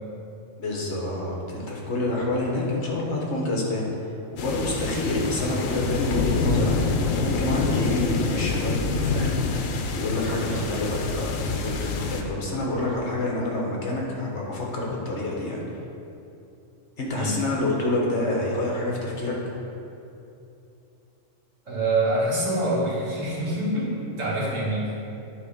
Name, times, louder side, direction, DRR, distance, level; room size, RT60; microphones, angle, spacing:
voice 1, 0.6-6.8 7.2-9.6 9.9-15.6 17.0-19.4, left 2 dB, 65° left, -2 dB, 1.5 m, -28 dB
sound 1, 4.4-12.2, left 4 dB, 90° left, 1.0 m, -26 dB
voice 2, 10.5-10.8 17.1-17.4 21.7-25.0, right 1 dB, 75° right, -6 dB, 2.1 m, -26 dB
9.3 x 4.0 x 5.1 m, 2.8 s
omnidirectional pair, 1.3 m